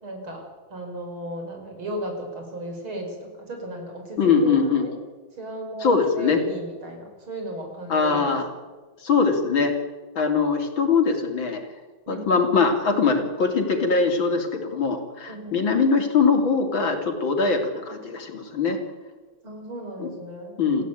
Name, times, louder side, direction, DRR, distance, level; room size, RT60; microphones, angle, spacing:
voice 1, 0.0-0.4 0.7-4.9 5.4-8.4 12.1-12.4 15.3-15.6 19.4-20.9, right 1 dB, 80° right, 3 dB, 6.1 m, -35 dB
voice 2, 4.2-4.8 5.8-6.4 7.9-8.5 9.0-9.7 10.2-11.6 12.1-18.8 20.0-20.1 20.6-20.8, left 5 dB, 70° left, 4 dB, 3.8 m, -22 dB
29.0 x 14.5 x 9.2 m, 1.4 s
omnidirectional pair, 2.2 m